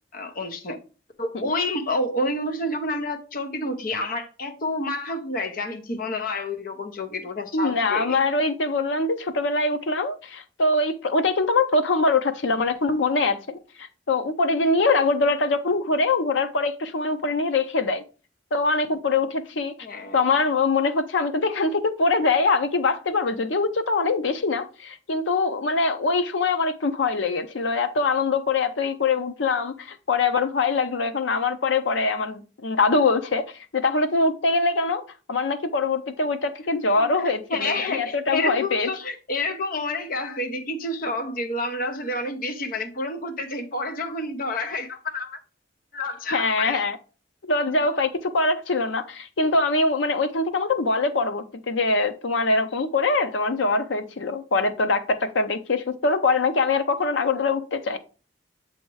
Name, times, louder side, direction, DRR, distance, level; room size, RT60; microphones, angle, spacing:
voice 1, 0.1-0.8 1.2-8.2 19.8-20.2 36.9-45.4 45.9-46.8, left 2 dB, 50° left, 0.9 m, -29 dB
voice 2, 7.5-18.0 18.5-19.7 20.1-33.4 33.7-35.0 35.3-38.9 46.3-47.0 47.5-58.0, left 3 dB, 90° left, 0.7 m, -23 dB
7.2 x 2.9 x 4.6 m
head